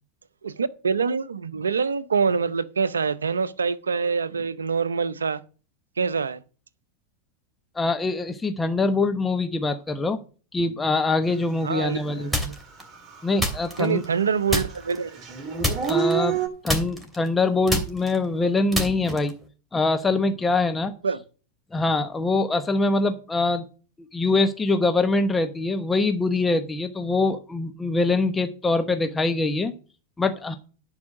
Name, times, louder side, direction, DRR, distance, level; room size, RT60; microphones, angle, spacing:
voice 1, 0.4-5.4 6.0-6.4 11.6-12.3 13.8-15.2 21.0-21.2, right 5 dB, 85° right, 0.7 m, -25 dB
voice 2, 7.7-10.2 10.5-12.3 13.2-14.0 15.9-16.4 16.6-19.3 19.7-20.9 21.7-23.7 24.1-29.7 30.2-30.6, left 3 dB, 15° left, 1.0 m, -23 dB
Dog / Siren, 12.1-12.2 12.7-14.1 14.4-16.5, right 7 dB, 30° right, 2.9 m, -28 dB
sound 1, 12.3-12.8 13.4-14.2 14.5-15.0 15.6-16.4 16.7-19.4, equal, 5° right, 2.8 m, -28 dB
10.5 x 4.9 x 7.8 m
hypercardioid pair, 90°, 0 cm